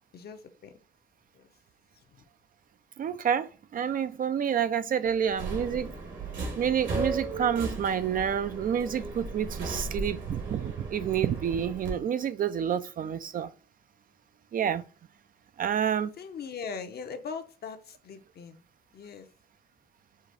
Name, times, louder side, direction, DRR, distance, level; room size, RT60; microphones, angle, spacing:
voice 1, 0.1-0.7 1.3-1.5 2.1-2.3 16.2-18.6 18.9-19.3, left 5 dB, 55° left, 0.7 m, -40 dB
voice 2, 3.0-6.0 6.6-13.5 14.5-14.8 15.6-16.1, right 8 dB, 45° right, 0.4 m, -28 dB
Subway metro underground, 5.3-11.9, right 3 dB, 70° right, 1.6 m, -36 dB
4.9 x 2.4 x 4.0 m
cardioid pair, 90°, 20 cm